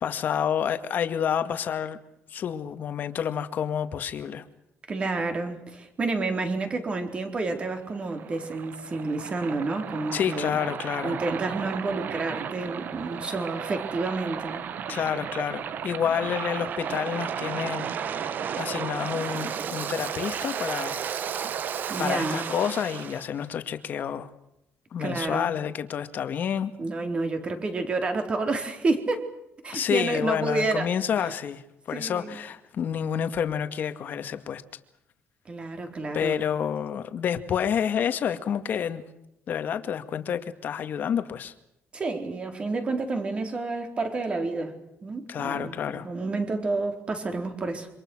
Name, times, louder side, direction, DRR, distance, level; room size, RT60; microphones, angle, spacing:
voice 1, 0.0-2.0 2.3-4.5 10.1-11.2 14.9-17.9 18.2-21.0 22.0-24.3 24.9-26.7 29.7-31.6 31.9-34.6 36.1-39.0 39.5-41.5 45.3-46.1, left 8 dB, 45° left, 9 dB, 2.2 m, -29 dB
voice 2, 4.9-10.6 11.0-14.6 21.9-22.5 25.0-25.5 26.8-29.3 29.6-30.9 31.9-32.4 35.5-36.4 41.9-44.7 45.0-47.9, right 3 dB, 25° right, 6 dB, 4.1 m, -29 dB
Waves surf, 7.5-23.3, right 8 dB, 45° right, 1.4 m, -34 dB
27.5 x 26.0 x 6.4 m, 0.83 s
cardioid pair, 170°, 4 cm